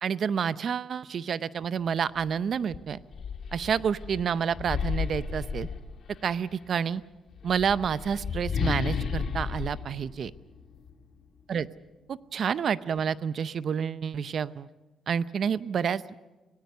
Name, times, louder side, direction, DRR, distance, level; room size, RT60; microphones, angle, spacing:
voice 1, 0.0-3.0 3.5-5.7 6.2-7.0 7.4-10.3 11.5-11.7 12.1-14.7 15.1-16.0, right 7 dB, 55° right, 16 dB, 0.7 m, -29 dB
sound 1, 2.2-2.3 2.7-6.3 7.3-10.9, left 6 dB, 55° left, 2.7 m, -33 dB
24.5 x 18.0 x 6.8 m, 1.1 s
cardioid pair, 90°, 0 cm